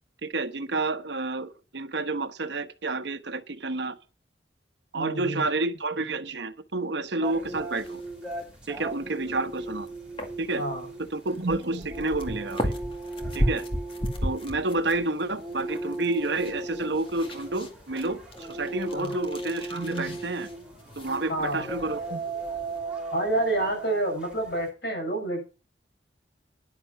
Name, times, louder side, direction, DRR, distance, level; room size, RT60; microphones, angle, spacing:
voice 1, 0.2-4.0 4.9-8.0 8.7-9.9 10.4-10.6 11.0-12.7 13.3-13.6 14.2-20.5 21.0-22.2, right 2 dB, 75° right, 1.1 m, -30 dB
voice 2, 5.0-5.4 10.6-10.8 19.0-19.2 21.3-21.7 23.1-25.4, right 1 dB, 65° left, 7.1 m, -28 dB
sound 1, 7.2-24.7, right 2 dB, 5° right, 4.9 m, -37 dB
sound 2, 7.4-22.8, equal, 30° left, 2.1 m, -37 dB
10.5 x 10.0 x 6.0 m
head